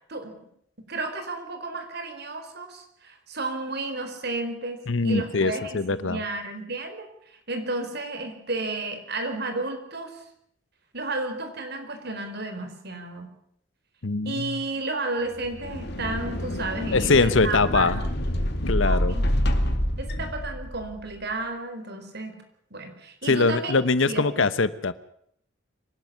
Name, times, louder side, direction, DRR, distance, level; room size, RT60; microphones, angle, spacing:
voice 1, 0.8-7.1 7.5-10.2 10.9-13.3 14.2-17.9 18.8-19.3 20.0-22.4 22.7-23.8 24.1-24.5, right 2 dB, 60° right, 6 dB, 4.3 m, -32 dB
voice 2, 4.9-6.2 14.0-14.6 16.9-18.0 18.6-19.2 23.3-24.9, left 3 dB, 80° left, 15 dB, 0.9 m, -22 dB
sound 1, 15.4-21.0, equal, 60° left, 2.3 m, -27 dB
25.0 x 12.0 x 9.5 m, 0.70 s
head